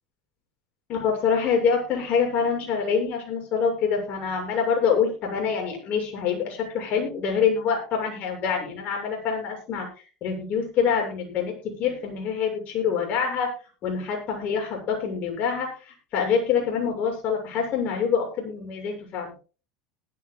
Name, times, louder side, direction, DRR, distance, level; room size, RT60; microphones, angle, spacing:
voice 1, 0.9-9.9 10.2-13.5 13.8-19.3, left 6 dB, 50° left, 2 dB, 7.3 m, -25 dB
19.5 x 12.5 x 2.4 m, 0.35 s
hypercardioid pair, 95°, 3 cm